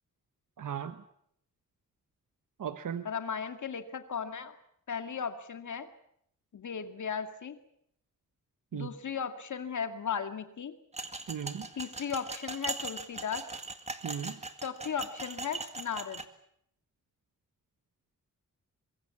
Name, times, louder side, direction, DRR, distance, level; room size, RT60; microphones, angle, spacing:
voice 1, 0.6-1.0 2.6-3.1 8.7-8.9 11.3-11.7 14.0-14.4, right 8 dB, 75° right, 10 dB, 1.3 m, -36 dB
voice 2, 3.0-4.6 4.9-5.9 6.5-7.6 8.7-10.8 11.8-13.5 14.6-16.2, left 7 dB, 65° left, 7 dB, 2.2 m, -36 dB
sound 1, 10.9-16.2, right 3 dB, 20° right, 1.9 m, -40 dB
24.5 x 22.5 x 7.2 m, 0.71 s
wide cardioid pair, 105°, 32 cm